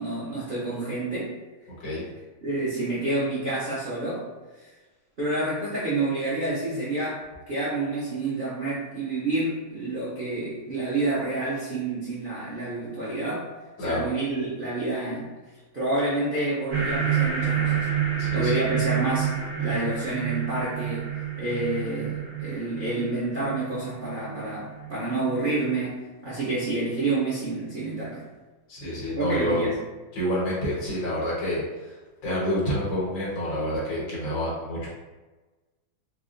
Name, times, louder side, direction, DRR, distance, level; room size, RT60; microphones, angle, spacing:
voice 1, 0.0-1.3 2.4-4.3 4.6-4.7 5.2-13.5 13.8-15.3 15.7-17.9 18.3-21.1 21.4-28.2 29.1-29.8, right 2 dB, 75° right, -9 dB, 0.4 m, -28 dB
sound 1, 16.7-25.6, right 9 dB, 60° right, 1.5 m, -29 dB
voice 2, 18.2-18.5 28.7-29.6 30.1-32.0 32.2-34.9, equal, 65° left, -7 dB, 1.9 m, -28 dB
4.7 x 2.4 x 2.5 m, 1.2 s
omnidirectional pair, 2.2 m